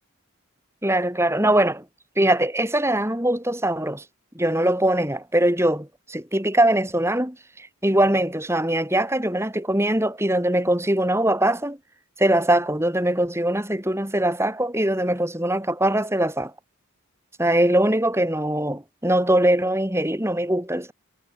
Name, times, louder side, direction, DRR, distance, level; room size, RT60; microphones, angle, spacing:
voice 1, 0.8-1.9 2.2-4.0 4.4-11.8 12.2-16.5 17.4-20.9, right 1 dB, 10° right, 5.2 m, -22 dB
head